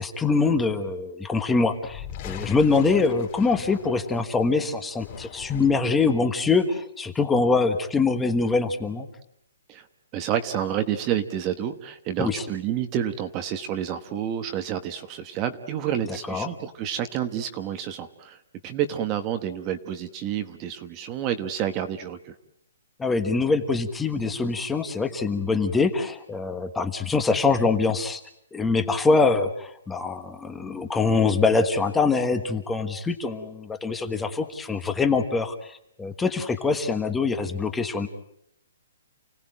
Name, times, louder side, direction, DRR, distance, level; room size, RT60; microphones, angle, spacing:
voice 1, 0.0-9.1 12.2-12.4 16.3-16.5 23.0-28.2 28.5-38.1, left 4 dB, 5° left, 7 dB, 1.3 m, -24 dB
sound 1, 1.8-4.4 4.8-6.0, left 9 dB, 25° left, 3.2 m, -40 dB
voice 2, 10.1-18.4 18.6-22.4, right 10 dB, 20° right, 8 dB, 1.2 m, -29 dB
29.5 x 18.0 x 9.0 m, 0.75 s
hypercardioid pair, 170°, 0 cm